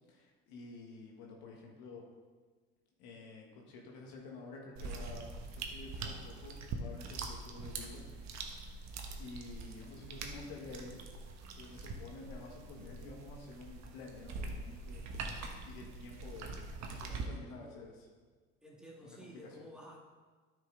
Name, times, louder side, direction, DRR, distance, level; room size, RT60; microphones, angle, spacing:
voice 1, 0.1-2.0 3.0-5.3 5.7-8.1 8.4-8.7 9.1-11.0 11.5-15.0 15.6-18.1 19.0-19.7, left 3 dB, 75° left, -1 dB, 1.6 m, -50 dB
sound 1, 4.8-17.3, right 3 dB, 55° right, 1.2 m, -44 dB
voice 2, 17.0-17.8 18.6-20.0, equal, ahead, -3 dB, 2.2 m, -53 dB
9.4 x 5.7 x 3.9 m, 1.4 s
hypercardioid pair, 75°, 34 cm